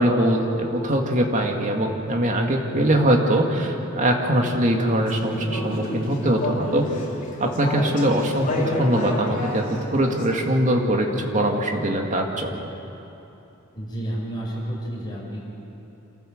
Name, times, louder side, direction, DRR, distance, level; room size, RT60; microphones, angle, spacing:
voice 1, 0.0-6.8 7.4-8.5 8.8-12.7, right 1 dB, 35° right, 2 dB, 2.1 m, -22 dB
Conversation / Chatter, 5.1-10.4, left 2 dB, 40° left, 3.5 m, -30 dB
voice 2, 13.7-15.4, right 1 dB, 20° left, -5 dB, 6.3 m, -30 dB
27.0 x 14.0 x 7.9 m, 2.9 s
head